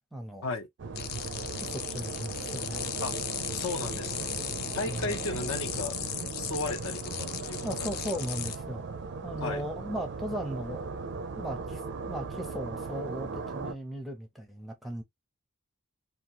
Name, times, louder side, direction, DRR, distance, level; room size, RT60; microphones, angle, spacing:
voice 1, 0.1-0.5 1.6-2.9 4.9-5.2 7.6-8.8 9.2-10.9 11.3-11.8 12.1-15.0, equal, ahead, 0.6 m, -37 dB
sound 1, 0.8-13.7, right 4 dB, 55° right, 0.4 m, -38 dB
sound 2, 1.0-8.6, left 10 dB, 45° left, 0.4 m, -37 dB
voice 2, 3.5-4.3 4.7-6.0 6.3-7.9 9.4-9.6, left 3 dB, 65° left, 0.7 m, -35 dB
2.8 x 2.3 x 2.8 m
head